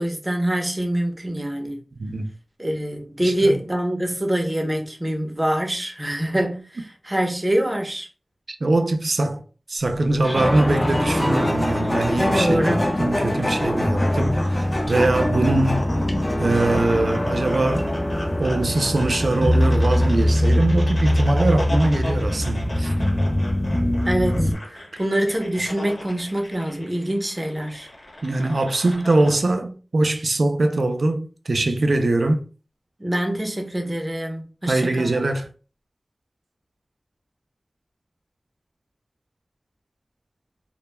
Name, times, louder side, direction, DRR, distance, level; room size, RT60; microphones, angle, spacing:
voice 1, 0.0-1.8 2.6-8.1 12.3-12.9 24.1-27.9 33.0-35.1, right 1 dB, 25° right, 0.6 m, -25 dB
voice 2, 8.6-9.4 9.7-15.9 16.4-17.9 18.4-22.9 28.2-32.4 34.7-35.5, right 2 dB, 80° right, 0.3 m, -22 dB
sound 1, 9.8-14.9, left 1 dB, 50° left, 0.9 m, -32 dB
sound 2, 10.3-24.5, left 1 dB, 30° left, 0.5 m, -22 dB
sound 3, 13.1-29.3, left 1 dB, 80° left, 0.9 m, -37 dB
2.1 x 2.1 x 3.0 m
wide cardioid pair, 70°, 0 cm